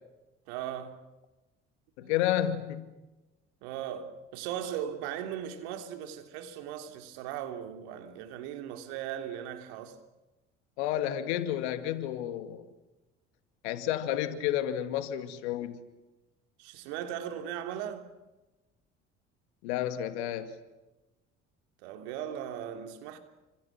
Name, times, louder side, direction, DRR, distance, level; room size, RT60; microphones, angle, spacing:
voice 1, 0.5-1.0 2.0-2.1 3.6-10.0 16.6-18.0 21.8-23.2, right 10 dB, 75° right, 3.2 m, -38 dB
voice 2, 2.0-2.9 10.8-12.7 13.6-15.8 19.6-20.5, left 11 dB, 75° left, 2.4 m, -31 dB
29.5 x 26.5 x 6.1 m
hypercardioid pair, 60°, 34 cm